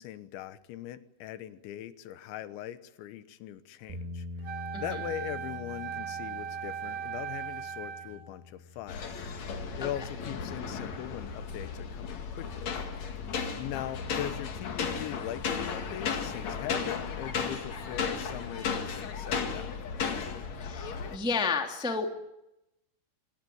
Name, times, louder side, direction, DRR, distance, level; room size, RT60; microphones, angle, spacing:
voice 1, 0.0-9.2 9.8-12.7 13.6-19.7, left 12 dB, 85° left, 12 dB, 3.5 m, -40 dB
sound 1, 3.9-12.0, left 1 dB, 65° right, 5.2 m, -46 dB
Wind instrument woodwind instrument, 4.4-8.2, right 8 dB, 50° right, 2.1 m, -38 dB
sound 2, 8.9-21.2, left 5 dB, 50° left, 2.7 m, -35 dB
voice 2, 20.6-22.1, left 4 dB, ahead, 4 dB, 1.1 m, -31 dB
26.0 x 18.0 x 9.3 m, 0.90 s
omnidirectional pair, 5.1 m